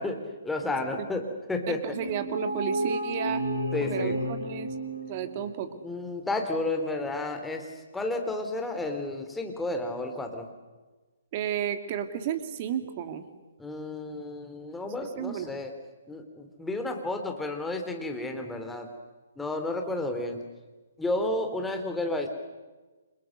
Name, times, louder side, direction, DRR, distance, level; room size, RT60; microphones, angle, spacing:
voice 1, 0.0-2.0 3.7-4.2 5.8-10.5 13.6-15.7 16.1-18.9 19.4-20.4 21.0-22.3, left 2 dB, 5° left, 4 dB, 3.4 m, -32 dB
voice 2, 1.7-3.4 3.8-4.7 5.0-5.7 11.3-13.2 15.0-15.5, right 9 dB, 35° right, 9 dB, 2.6 m, -32 dB
sound 1, 1.9-5.7, right 1 dB, 75° left, 6.5 m, -32 dB
29.5 x 26.5 x 6.6 m, 1.2 s
figure-of-eight pair, 125°, 0 cm